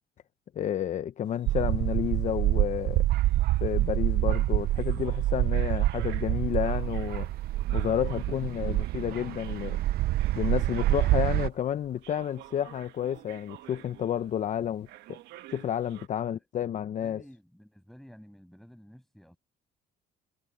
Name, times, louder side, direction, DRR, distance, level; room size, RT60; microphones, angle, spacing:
voice 1, 0.6-3.1 3.6-7.3 7.7-9.8 10.3-15.2 15.5-17.2, left 10 dB, 45° left, 0.8 m, -31 dB
sound 1, 1.3-11.5 12.0-14.5 14.8-16.1, right 15 dB, 85° right, 1.3 m, -50 dB
sound 2, 1.5-11.5, right 15 dB, 65° right, 0.5 m, -27 dB
sound 3, 6.2-14.4, right 8 dB, 50° right, 6.9 m, -58 dB
voice 2, 17.0-19.4, equal, ahead, 7.3 m, -52 dB
cardioid pair, 110°, 17 cm